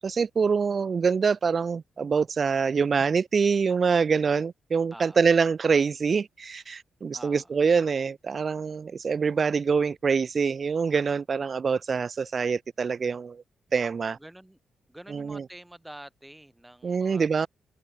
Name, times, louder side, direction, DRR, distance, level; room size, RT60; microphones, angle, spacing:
voice 1, 0.0-13.4 13.7-14.2 15.1-15.4 16.8-17.5, right 5 dB, 35° right, 0.8 m, -25 dB
voice 2, 4.9-5.3 7.1-7.5 14.1-14.6 14.9-17.5, right 1 dB, 5° right, 2.2 m, -47 dB
wide cardioid pair, 155°, 0 cm